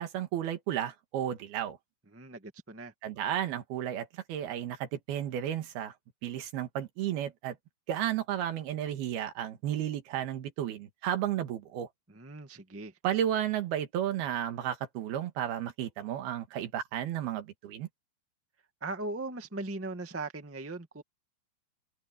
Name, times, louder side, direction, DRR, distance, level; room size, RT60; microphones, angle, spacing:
voice 1, 0.0-1.8 3.0-5.9 6.2-7.6 7.9-11.9 13.0-17.9, right 11 dB, 90° right, 3.7 m, -33 dB
voice 2, 2.1-2.9 12.1-12.9 18.8-21.0, right 2 dB, 10° right, 0.6 m, -39 dB
omnidirectional pair, 4.3 m